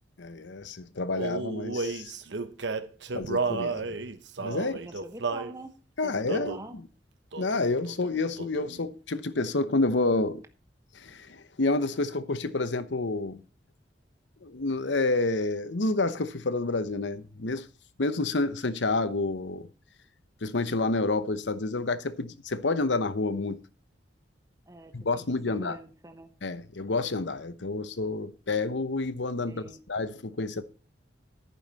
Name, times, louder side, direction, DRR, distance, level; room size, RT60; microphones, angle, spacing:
voice 1, 0.2-2.2 3.1-4.0 4.4-4.8 6.0-6.8 7.4-10.4 10.9-13.4 14.4-17.7 18.0-19.7 20.4-23.6 24.9-25.8 26.4-30.6, left 3 dB, 80° left, 1.0 m, -29 dB
Male singing, 1.1-5.5 6.3-6.7 7.3-7.6 7.9-8.8, right 3 dB, 75° right, 1.0 m, -32 dB
voice 2, 4.6-5.8 6.0-6.7 24.7-26.3 29.5-29.8, right 1 dB, 15° right, 1.0 m, -45 dB
11.0 x 9.5 x 4.1 m
head